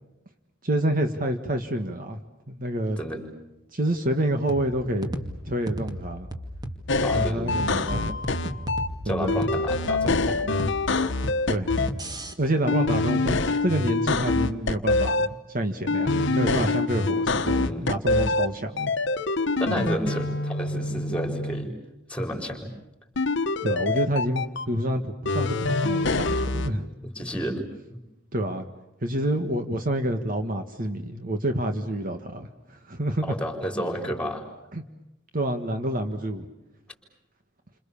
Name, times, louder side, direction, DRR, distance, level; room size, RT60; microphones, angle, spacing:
voice 1, 0.6-2.2 2.5-3.0 3.7-5.2 5.5-6.3 7.1-8.0 9.0-9.4 11.5-11.7 12.4-18.9 19.7-19.8 23.6-25.6 25.8-26.9 28.3-28.7 29.0-33.4 34.7-34.8 35.3-36.5, right 1 dB, 45° right, 6 dB, 1.7 m, -28 dB
sound 1, 4.5-12.3, equal, 20° right, 2.3 m, -35 dB
sound 2, 6.9-8.9 9.3-11.9 12.7-15.3 15.9-18.5 18.8-21.7 23.2-24.7 25.3-26.7, left 3 dB, 60° left, 1.2 m, -25 dB
voice 2, 7.0-7.5 7.9-8.0 9.0-10.4 17.6-17.9 19.6-21.7 22.1-22.7 27.1-28.0 33.2-34.4, equal, 5° left, 4 dB, 4.9 m, -31 dB
30.0 x 27.0 x 7.1 m, 0.94 s
head